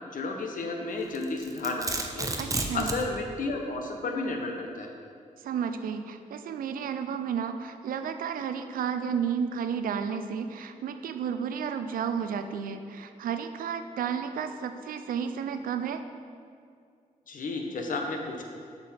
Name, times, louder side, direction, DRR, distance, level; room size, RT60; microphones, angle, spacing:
voice 1, 0.1-2.3 2.7-4.9 17.3-18.4, left 3 dB, 70° left, 2 dB, 0.9 m, -32 dB
Domestic sounds home sounds, 1.1-3.1, right 2 dB, 25° right, 0.6 m, -31 dB
voice 2, 2.4-2.9 5.4-16.0, right 7 dB, 85° right, 9 dB, 0.4 m, -32 dB
7.0 x 4.8 x 4.2 m, 2.3 s
cardioid pair, 75°, 14 cm